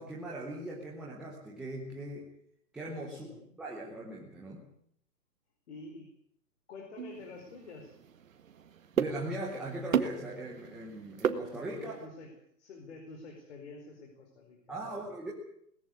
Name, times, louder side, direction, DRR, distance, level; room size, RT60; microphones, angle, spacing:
voice 1, 0.0-2.3 2.7-3.3 3.6-4.6 9.0-12.0 14.7-15.3, right 1 dB, ahead, -6 dB, 0.9 m, -40 dB
voice 2, 3.1-3.6 5.7-6.1 6.7-7.9 11.5-12.3 12.6-14.6 14.9-15.1, left 3 dB, 40° left, 2 dB, 4.8 m, -48 dB
sound 1, 7.0-12.0, right 8 dB, 50° right, 1.8 m, -35 dB
19.5 x 14.5 x 9.6 m, 0.70 s
hypercardioid pair, 165°, 49 cm